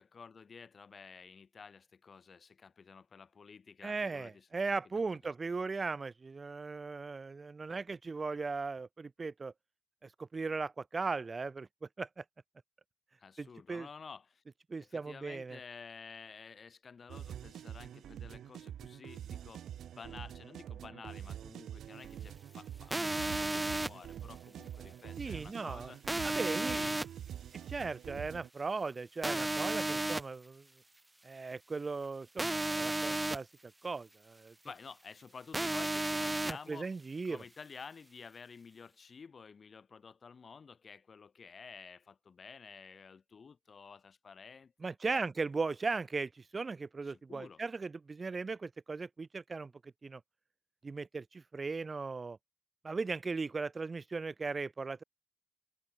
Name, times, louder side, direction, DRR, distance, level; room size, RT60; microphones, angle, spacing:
voice 1, 0.0-4.6 5.6-5.7 13.2-14.4 14.8-19.6 20.0-26.0 26.5-27.0 34.6-36.9 37.2-45.2 47.0-47.6, left 5 dB, 45° left, 5.0 m, -52 dB
voice 2, 3.8-9.5 10.0-12.2 13.4-13.9 14.7-15.6 25.2-25.9 26.2-26.8 27.7-30.7 31.2-33.5 33.8-34.5 36.5-37.4 44.8-50.2 50.8-52.4 52.8-55.0, right 4 dB, 35° right, 0.4 m, -38 dB
sound 1, 17.1-28.5, right 10 dB, 60° right, 2.1 m, -46 dB
sound 2, 22.9-23.9 26.1-27.0 29.2-30.2 32.4-33.4 35.5-36.5, right 2 dB, 15° right, 0.8 m, -33 dB
figure-of-eight pair, 40°, 0 cm